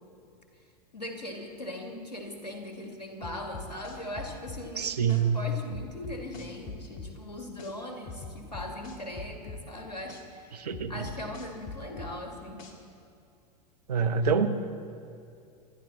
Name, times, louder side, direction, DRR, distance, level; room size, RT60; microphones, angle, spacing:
voice 1, 0.9-10.5 10.9-12.6, left 1 dB, 90° left, 2 dB, 2.3 m, -40 dB
sound 1, 3.2-4.6 5.1-5.2 5.7-7.1 7.6-7.7 8.1-9.6 10.1-10.2 10.7-12.1 12.6-12.7, left 4 dB, 55° left, 2.1 m, -42 dB
voice 2, 4.8-5.4 10.5-11.1 13.9-14.5, right 6 dB, 75° right, 10 dB, 1.1 m, -26 dB
28.0 x 11.0 x 4.3 m, 2.5 s
figure-of-eight pair, 95°, 21 cm